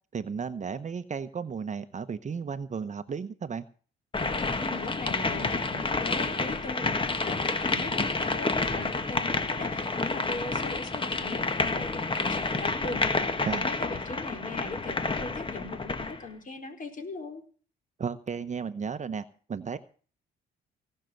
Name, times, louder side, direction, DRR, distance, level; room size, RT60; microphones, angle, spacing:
voice 1, 0.1-3.6 13.4-13.7 18.0-19.8, right 6 dB, 35° right, 11 dB, 1.0 m, -34 dB
sound 1, 4.1-16.2, left 3 dB, 25° left, 1.5 m, -29 dB
voice 2, 4.6-6.9 7.3-17.4, left 3 dB, 40° left, 5 dB, 4.3 m, -39 dB
18.0 x 6.6 x 7.8 m, 0.41 s
cardioid pair, 90°, 20 cm